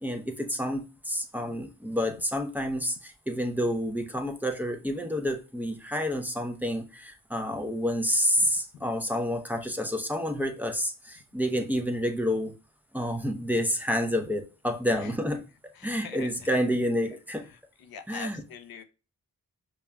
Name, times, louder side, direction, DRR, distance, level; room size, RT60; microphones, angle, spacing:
voice 1, 0.0-12.5 12.9-17.5 18.1-18.4, equal, 5° right, 0.7 m, -29 dB
voice 2, 15.7-16.5 17.5-18.8, left 7 dB, 80° left, 0.5 m, -43 dB
5.3 x 2.3 x 2.2 m
cardioid pair, 50°, 36 cm